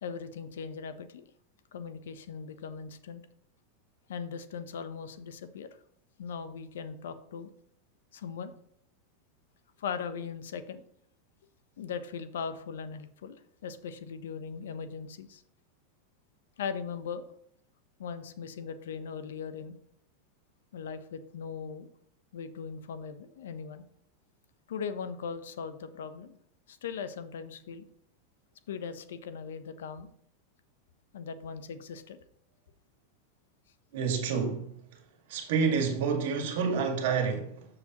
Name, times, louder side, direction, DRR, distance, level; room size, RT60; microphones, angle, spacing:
voice 1, 0.0-1.2 1.7-3.2 4.1-5.7 6.2-7.5 8.1-8.5 9.8-10.8 11.8-13.4 13.6-15.4 16.6-17.3 18.0-19.7 20.7-21.9 22.3-23.8 24.7-26.4 26.7-27.9 28.7-30.1 31.1-32.2, left 6 dB, 85° left, 0.7 m, -39 dB
voice 2, 33.9-34.7 35.3-37.7, right 5 dB, 70° right, 1.7 m, -28 dB
7.1 x 6.6 x 2.9 m
hypercardioid pair, 120°, 0 cm